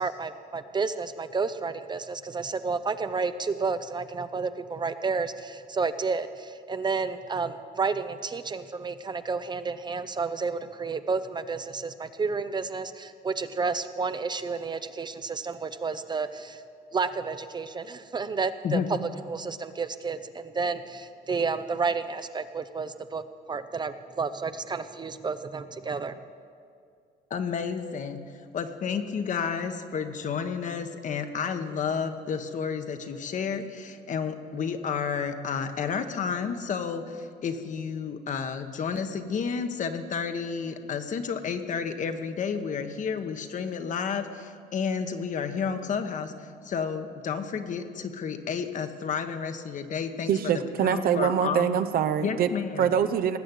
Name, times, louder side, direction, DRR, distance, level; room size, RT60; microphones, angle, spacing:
voice 1, 0.0-16.6 16.9-18.8 19.3-26.2, right 4 dB, 25° right, 11 dB, 0.6 m, -31 dB
voice 2, 18.6-19.0 27.3-51.7 52.2-53.0, left 6 dB, 50° left, 8 dB, 1.2 m, -31 dB
voice 3, 50.3-52.5 52.8-53.4, right 8 dB, 60° right, 9 dB, 0.8 m, -24 dB
19.0 x 7.5 x 8.3 m, 2.3 s
cardioid pair, 110°, 17 cm